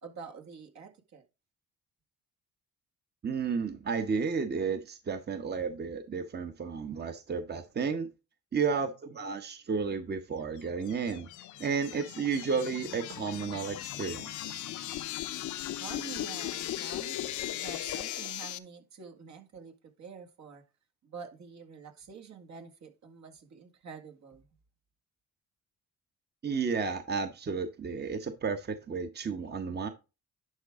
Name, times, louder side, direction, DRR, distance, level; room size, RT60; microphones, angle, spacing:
voice 1, 0.0-1.2 15.8-20.6 21.0-24.5, right 6 dB, 65° right, 2.0 m, -47 dB
voice 2, 3.2-8.1 8.5-11.3 11.6-14.6 26.4-29.9, right 5 dB, 35° right, 1.0 m, -32 dB
sound 1, 10.6-18.6, left 13 dB, 80° left, 0.7 m, -38 dB
11.0 x 4.8 x 3.6 m
cardioid pair, 90°, 30 cm